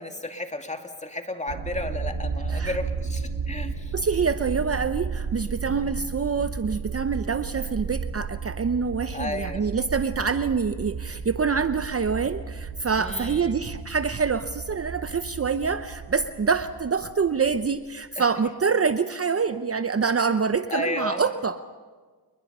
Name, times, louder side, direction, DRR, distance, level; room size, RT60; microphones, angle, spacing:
voice 1, 0.0-3.9 5.7-6.0 9.1-9.7 13.0-13.6 18.2-18.3 20.7-21.3, left 2 dB, 15° left, 5 dB, 2.4 m, -33 dB
sound 1, 1.5-17.9, right 5 dB, 80° right, 4.3 m, -34 dB
voice 2, 3.9-21.6, right 5 dB, 35° right, 11 dB, 0.8 m, -26 dB
29.5 x 21.0 x 5.5 m, 1.5 s
cardioid pair, 65°, 41 cm